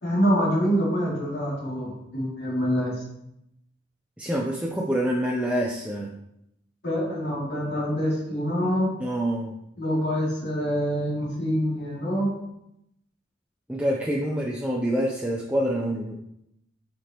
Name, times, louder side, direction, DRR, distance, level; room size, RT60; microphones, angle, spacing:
voice 1, 0.0-3.0 6.8-8.9 9.8-12.3, equal, 55° left, -5 dB, 2.8 m, -25 dB
voice 2, 4.2-6.1 9.0-9.5 13.7-16.2, equal, 5° right, -2 dB, 0.6 m, -26 dB
9.2 x 5.2 x 3.0 m, 0.81 s
head